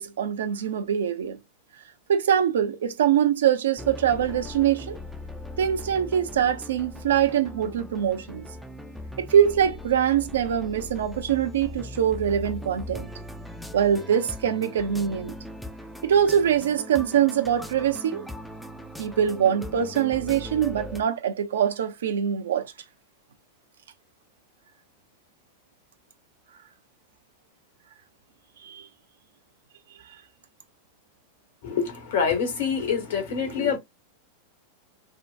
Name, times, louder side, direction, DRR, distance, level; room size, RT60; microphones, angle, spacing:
voice 1, 0.0-1.4 2.1-5.0 5.6-8.5 9.2-13.1 13.7-15.3 16.0-18.3 19.0-22.7 28.6-28.9 30.1-30.2, right 9 dB, 65° right, 0.6 m, -23 dB
sound 1, 3.8-21.0, left 1 dB, ahead, 0.5 m, -39 dB
voice 2, 31.6-33.8, left 6 dB, 60° left, 1.4 m, -26 dB
4.5 x 2.2 x 2.4 m
figure-of-eight pair, 90°, 0 cm